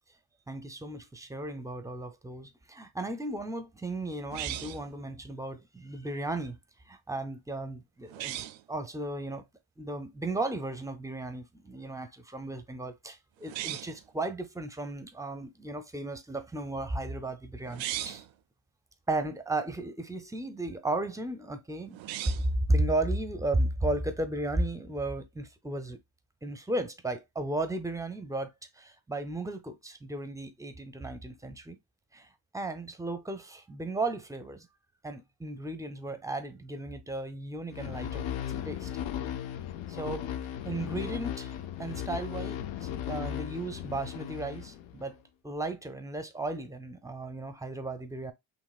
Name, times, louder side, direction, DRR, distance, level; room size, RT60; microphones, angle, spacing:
voice 1, 0.5-6.6 6.9-9.5 9.8-18.2 19.1-22.0 22.7-26.0 26.4-31.8 32.1-32.3 32.5-34.7 35.0-38.3 38.6-38.9 39.9-40.3 40.6-45.2 45.4-48.3, right 2 dB, 10° right, 0.5 m, -35 dB
sound 1, 4.3-4.9 8.1-8.6 13.4-14.0 17.6-18.3 21.9-22.6, right 13 dB, 90° right, 0.5 m, -37 dB
sound 2, 37.7-45.1, left 10 dB, 90° left, 0.7 m, -36 dB
5.2 x 3.2 x 2.4 m
cardioid pair, 145°, 45 cm